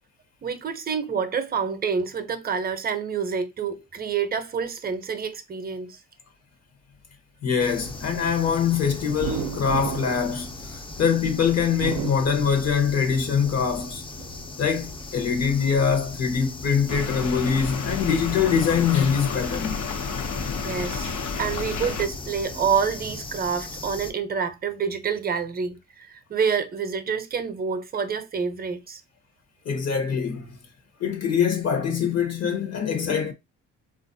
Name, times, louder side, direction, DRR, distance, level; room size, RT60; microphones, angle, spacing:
voice 1, 0.4-6.0 20.6-29.0, right 6 dB, 30° right, 0.6 m, -28 dB
voice 2, 7.4-14.0 14.6-19.8 29.6-30.6 31.0-33.3, left 6 dB, 55° left, 0.9 m, -23 dB
sound 1, 7.6-24.1, left 3 dB, 15° left, 0.4 m, -38 dB
sound 2, 9.2-11.1 11.7-13.0 13.4-14.3, right 10 dB, 70° right, 0.5 m, -33 dB
sound 3, 16.9-22.1, left 5 dB, 85° left, 0.7 m, -31 dB
3.3 x 2.4 x 2.6 m
cardioid pair, 90°, 30 cm